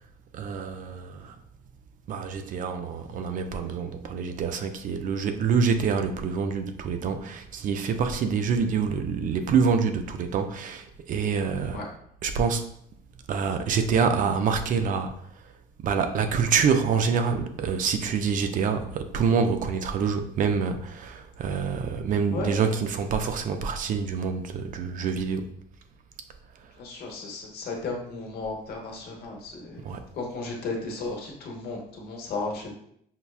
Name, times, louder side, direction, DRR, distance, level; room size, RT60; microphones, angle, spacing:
voice 1, 0.3-1.4 2.1-11.8 12.2-12.6 13.3-15.2 15.8-25.5 29.8-30.0, right 6 dB, 50° right, 7 dB, 0.4 m, -26 dB
voice 2, 22.3-22.8 26.8-29.8 30.1-32.7, left 3 dB, 70° left, 0 dB, 1.0 m, -34 dB
5.5 x 2.2 x 2.4 m, 0.70 s
cardioid pair, 110°, 17 cm